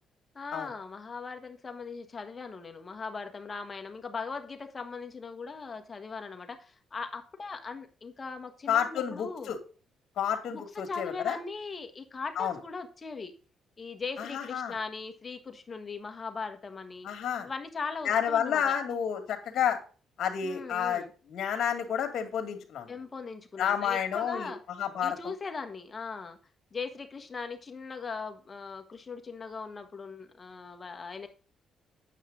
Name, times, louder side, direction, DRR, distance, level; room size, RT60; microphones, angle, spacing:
voice 1, 0.3-9.5 10.5-13.3 13.8-17.1 17.4-18.8 20.4-21.1 22.9-24.6 25.0-26.4 26.7-31.3, left 4 dB, 35° left, 7 dB, 1.4 m, -39 dB
voice 2, 8.7-9.6 10.2-11.4 12.4-12.6 14.2-14.7 17.0-17.5 18.0-19.8 20.2-22.9 23.6-24.5 24.8-25.3, left 8 dB, 70° left, 6 dB, 2.3 m, -30 dB
9.2 x 7.4 x 3.9 m, 0.37 s
cardioid pair, 90°, 0 cm